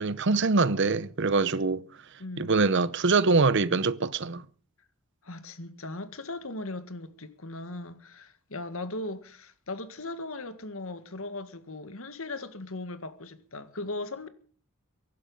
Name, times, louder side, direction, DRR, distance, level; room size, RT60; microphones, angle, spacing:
voice 1, 0.0-1.9 2.4-4.4, right 3 dB, 55° right, 0.8 m, -24 dB
voice 2, 2.2-2.5 5.2-14.3, left 2 dB, 65° left, 1.9 m, -38 dB
23.0 x 11.5 x 5.5 m
head